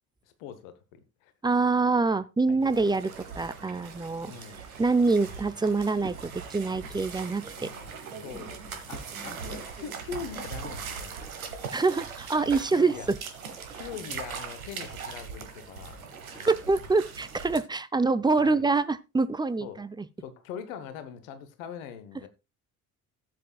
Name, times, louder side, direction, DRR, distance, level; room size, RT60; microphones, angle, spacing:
voice 1, 0.4-1.3 2.5-2.6 4.2-4.6 7.6-8.0 8.2-11.3 12.7-13.1 13.7-16.5 18.4-18.6 19.6-19.8 20.2-22.3, left 7 dB, 65° left, 1.2 m, -42 dB
voice 2, 1.4-4.3 4.8-7.7 8.3-8.4 9.2-9.3 11.7-12.9 16.5-20.1, right 3 dB, 10° right, 0.6 m, -25 dB
sound 1, 2.6-17.6, right 6 dB, 80° right, 1.2 m, -40 dB
15.0 x 7.7 x 2.4 m
figure-of-eight pair, 45°, 42 cm